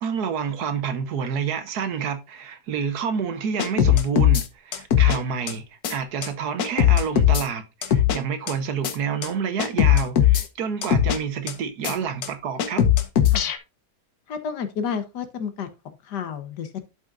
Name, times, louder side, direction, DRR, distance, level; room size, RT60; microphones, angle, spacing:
voice 1, 0.0-12.8, right 7 dB, 70° right, 1.5 m, -28 dB
sound 1, 3.6-4.4 4.7-5.2 5.5-5.6 5.8-5.9 6.2-6.3 6.6-7.4 7.8-8.2 8.5-8.6 8.8-8.9 9.2-9.3 9.6-10.4 10.8-11.2 11.5-11.6 11.8-11.9 12.2-12.3 12.6-13.6, left 10 dB, 70° left, 1.4 m, -19 dB
voice 2, 14.3-15.7 16.1-16.8, left 7 dB, 85° left, 1.7 m, -31 dB
11.5 x 5.6 x 2.5 m
omnidirectional pair, 1.8 m